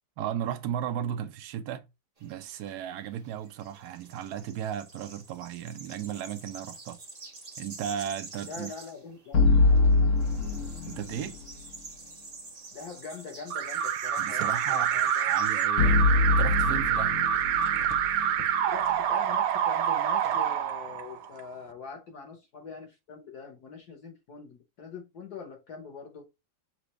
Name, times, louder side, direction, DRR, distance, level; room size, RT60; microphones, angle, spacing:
voice 1, 0.2-1.9 2.2-7.0 7.6-8.7 10.9-11.4 14.2-17.2, right 10 dB, 70° right, 0.9 m, -35 dB
sound 1, 2.2-15.7, right 3 dB, 30° right, 0.7 m, -47 dB
voice 2, 8.4-9.5 12.7-15.3 18.7-26.3, left 5 dB, 55° left, 1.2 m, -43 dB
sound 2, 9.3-11.5 15.8-19.0, left 3 dB, 80° left, 0.7 m, -24 dB
Alarm, 13.5-21.4, right 9 dB, 90° right, 1.5 m, -27 dB
6.0 x 2.5 x 3.0 m
omnidirectional pair, 2.4 m